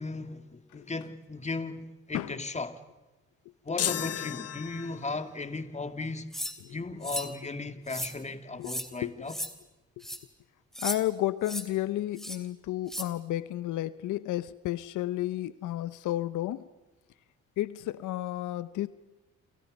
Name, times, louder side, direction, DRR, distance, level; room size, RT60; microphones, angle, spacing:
voice 1, 0.0-2.8 3.6-6.3 6.7-9.4, left 3 dB, 20° left, 2.3 m, -36 dB
sound 1, 3.8-5.3, left 10 dB, 55° left, 1.0 m, -33 dB
sound 2, 6.3-6.6 7.0-7.3 7.9-8.1 8.6-8.9 9.3-9.5 10.0-10.2 10.7-11.0 11.4-11.6 12.2-12.4 12.9-13.1, equal, ahead, 3.1 m, -35 dB
voice 2, 9.0-9.3 10.8-16.7 17.6-18.9, left 14 dB, 80° left, 0.8 m, -32 dB
28.5 x 28.0 x 5.3 m
cardioid pair, 90°, 30 cm